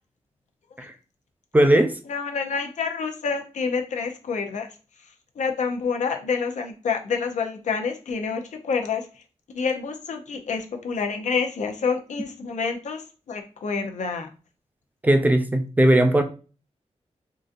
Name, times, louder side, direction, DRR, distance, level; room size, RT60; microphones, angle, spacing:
voice 1, 1.5-2.0 15.0-16.2, right 1 dB, 15° right, 0.4 m, -18 dB
voice 2, 2.1-4.7 5.4-9.2 9.5-14.3, left 5 dB, 85° left, 0.6 m, -28 dB
3.8 x 2.6 x 2.4 m
wide cardioid pair, 120°, 12 cm